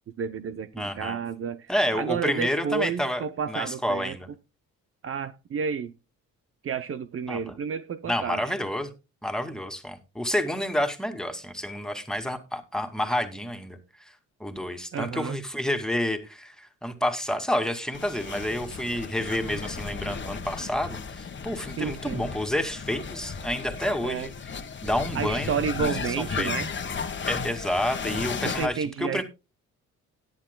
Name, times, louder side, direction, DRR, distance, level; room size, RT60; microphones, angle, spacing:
voice 1, 0.2-4.2 5.0-5.9 6.6-8.5 14.9-15.4 21.7-22.2 24.0-24.3 25.1-26.7 28.4-29.2, right 6 dB, 45° right, 0.7 m, -31 dB
voice 2, 0.7-1.2 1.7-3.2 3.5-4.3 7.3-7.5 8.1-8.9 9.2-13.8 14.1-24.3 24.8-25.9 26.2-26.5 27.2-29.2, left 1 dB, ahead, 2.3 m, -29 dB
sound 1, 17.9-28.7, left 5 dB, 40° left, 1.4 m, -35 dB
17.5 x 10.5 x 2.3 m
cardioid pair, 90°, 30 cm